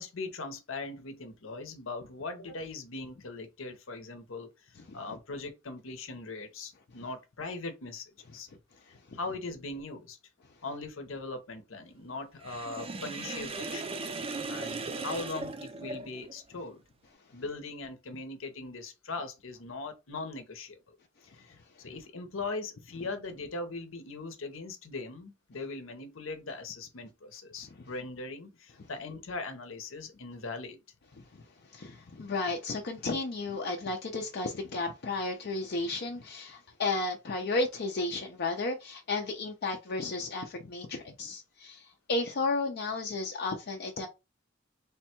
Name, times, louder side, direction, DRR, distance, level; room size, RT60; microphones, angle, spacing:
voice 1, 0.0-8.5 8.9-10.2 10.6-13.9 14.5-16.8 17.3-21.0 21.2-30.8, left 3 dB, 80° left, 0.8 m, -40 dB
Sink (filling or washing), 12.4-16.4, right 3 dB, 30° right, 0.4 m, -38 dB
voice 2, 31.7-44.1, left 3 dB, 55° left, 0.5 m, -33 dB
3.4 x 2.2 x 4.3 m
head